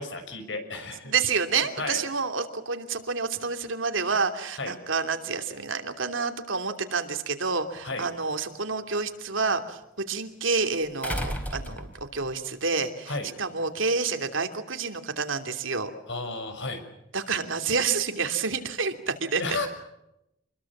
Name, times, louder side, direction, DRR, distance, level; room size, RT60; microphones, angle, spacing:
voice 1, 0.0-1.1 1.8-2.0 4.6-4.7 7.8-8.1 13.1-13.3 16.1-16.8 19.4-19.7, left 2 dB, 65° left, 8 dB, 6.1 m, -32 dB
voice 2, 1.0-15.9 17.1-19.6, right 4 dB, 85° right, 6 dB, 2.9 m, -29 dB
sound 1, 7.8-7.9 11.0-12.3 13.7-13.8, equal, 10° left, 3.6 m, -33 dB
28.0 x 22.0 x 7.4 m, 0.86 s
head